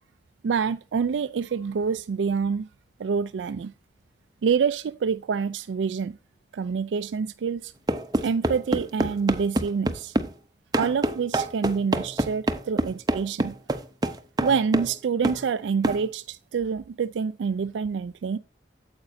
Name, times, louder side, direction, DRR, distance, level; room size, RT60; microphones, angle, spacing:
voice 1, 0.4-2.7 3.0-3.7 4.4-6.2 6.5-7.7 8.2-10.1 10.8-13.6 14.4-18.4, right 6 dB, 90° right, 0.4 m, -27 dB
sound 1, 7.9-10.3 10.7-15.0 15.2-15.4 15.8-16.0, right 1 dB, 20° right, 0.7 m, -26 dB
8.9 x 8.0 x 2.6 m
head